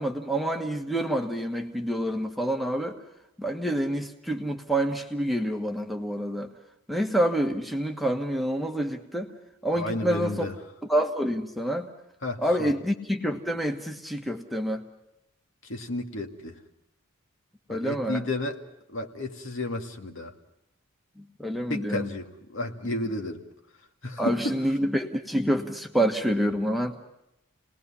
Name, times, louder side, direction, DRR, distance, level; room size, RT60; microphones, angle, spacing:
voice 1, 0.0-3.0 3.4-6.5 6.9-9.3 9.6-10.5 10.9-11.9 12.4-14.8 17.7-18.2 21.2-22.1 24.2-26.9, right 1 dB, ahead, 2 dB, 1.3 m, -27 dB
voice 2, 9.7-10.5 12.2-12.7 15.7-16.6 17.7-18.6 18.9-20.3 21.7-23.4 24.0-24.6, left 2 dB, 70° left, 3 dB, 2.2 m, -32 dB
29.5 x 20.0 x 5.7 m, 0.83 s
head